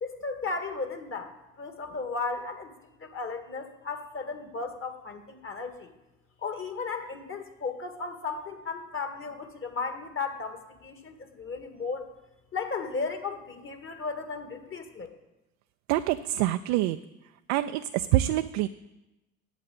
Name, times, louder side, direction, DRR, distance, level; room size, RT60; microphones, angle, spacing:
voice 1, 0.0-2.7 3.0-5.9 6.4-12.1 12.5-15.1, left 4 dB, 30° left, 6 dB, 2.0 m, -35 dB
voice 2, 15.9-17.0 17.5-18.7, right 14 dB, 60° right, 9 dB, 0.6 m, -26 dB
8.8 x 8.4 x 8.6 m, 0.97 s
figure-of-eight pair, 60°, 40 cm